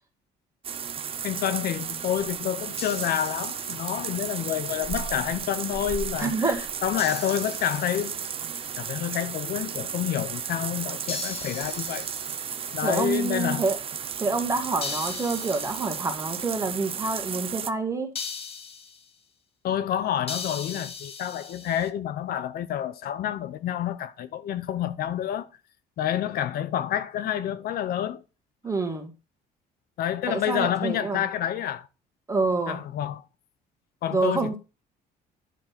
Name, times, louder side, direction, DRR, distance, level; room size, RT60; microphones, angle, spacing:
sound 1, 0.6-17.7, right 8 dB, 35° right, 0.5 m, -34 dB
voice 1, 1.2-6.5 6.8-8.2 8.8-12.1 12.7-13.6 19.6-25.5 26.0-28.2 30.0-31.9 32.7-33.2 34.0-34.6, left 10 dB, 65° left, 0.7 m, -28 dB
sound 2, 2.8-4.2 7.0-8.5 11.1-13.0 14.8-16.3 18.1-19.1 20.3-21.9, left 5 dB, 35° left, 0.9 m, -39 dB
voice 2, 6.2-6.6 12.8-13.8 14.2-18.1 28.6-29.1 30.3-31.3 32.3-32.8 34.1-34.6, right 3 dB, 20° right, 1.8 m, -27 dB
10.0 x 3.8 x 5.8 m
cardioid pair, 110°, 17 cm